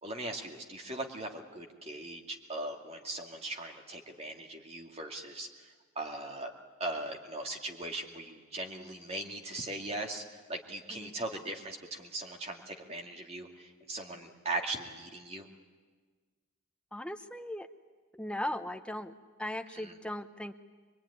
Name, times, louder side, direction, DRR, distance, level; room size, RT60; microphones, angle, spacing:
voice 1, 0.0-5.7 6.0-6.5 6.8-10.2 10.5-15.5 19.8-19.9, right 2 dB, 30° right, 2 dB, 2.4 m, -39 dB
voice 2, 16.9-17.7 18.1-20.5, left 1 dB, 5° left, 8 dB, 0.8 m, -38 dB
24.0 x 23.0 x 9.8 m, 1.4 s
head